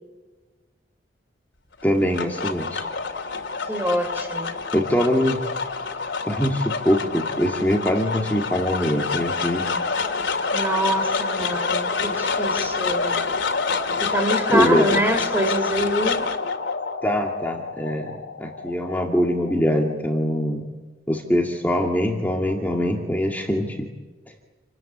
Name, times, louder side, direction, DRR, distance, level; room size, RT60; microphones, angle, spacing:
sound 1, 1.8-20.1, left 4 dB, 85° left, 2.7 m, -27 dB
voice 1, 1.8-2.9 4.7-5.4 6.2-9.7 14.5-15.0 17.0-20.6 21.1-23.9, equal, 10° left, -1 dB, 2.1 m, -23 dB
voice 2, 3.7-4.6 10.5-13.2 14.0-16.2, right 1 dB, 10° right, 6 dB, 3.3 m, -25 dB
29.0 x 19.0 x 8.6 m, 1.3 s
head